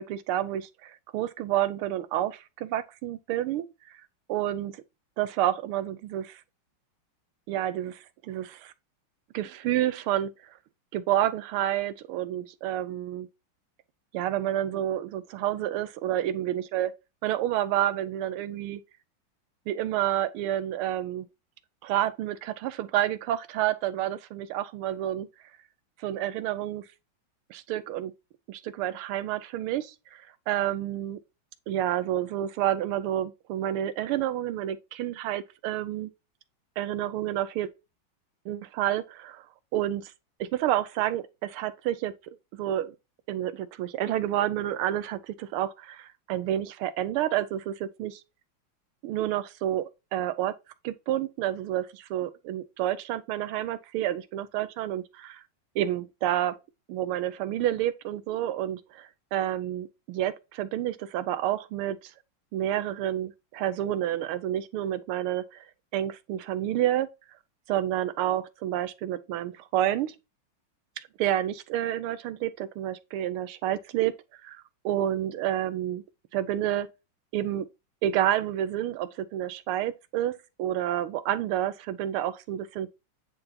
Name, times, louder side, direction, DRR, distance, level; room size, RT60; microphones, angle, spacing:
voice 1, 0.0-3.6 4.3-4.8 5.2-6.4 7.5-8.7 9.3-10.3 10.9-13.3 14.1-16.9 17.2-18.8 19.7-21.2 21.8-25.3 26.0-26.8 27.5-28.1 28.5-31.2 31.7-36.1 36.8-37.7 38.4-39.4 39.7-40.1 40.4-42.1 42.5-42.9 43.3-48.2 49.0-50.5 50.8-55.4 55.7-56.6 56.9-62.0 62.5-65.6 65.9-67.1 67.7-70.1 71.2-74.1 74.4-76.0 76.3-76.9 77.3-77.7 78.0-82.9, right 12 dB, 90° right, 1.6 m, -29 dB
9.2 x 3.8 x 2.8 m
omnidirectional pair, 2.3 m